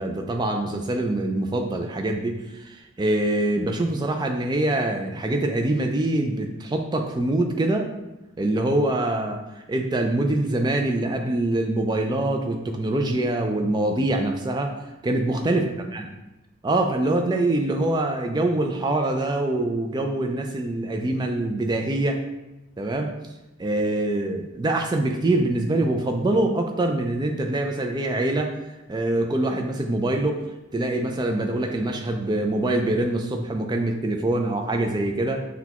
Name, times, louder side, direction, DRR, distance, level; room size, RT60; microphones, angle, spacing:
voice 1, 0.0-7.9 8.4-9.4 9.7-14.7 15.0-15.7 15.9-16.0 16.6-22.2 22.8-23.1 23.6-28.6 28.9-30.4 30.7-35.4, right 2 dB, 20° right, 4 dB, 0.3 m, -24 dB
6.0 x 2.3 x 2.9 m, 1.0 s
head